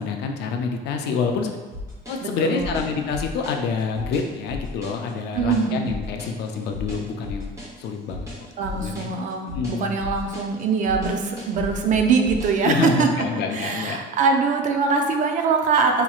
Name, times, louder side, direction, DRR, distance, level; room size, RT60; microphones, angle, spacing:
voice 1, 0.0-1.5 2.1-7.5 7.8-8.3 8.7-9.1 9.5-10.0 12.6-14.0, left 5 dB, 60° left, 4 dB, 0.4 m, -27 dB
sound 1, 1.7-12.6, left 2 dB, 15° right, 0.9 m, -34 dB
voice 2, 2.2-2.8 5.3-5.8 8.6-13.1 13.5-16.0, right 5 dB, 40° right, 4 dB, 0.4 m, -22 dB
4.1 x 2.9 x 2.3 m, 1.3 s
cardioid pair, 160°, 19 cm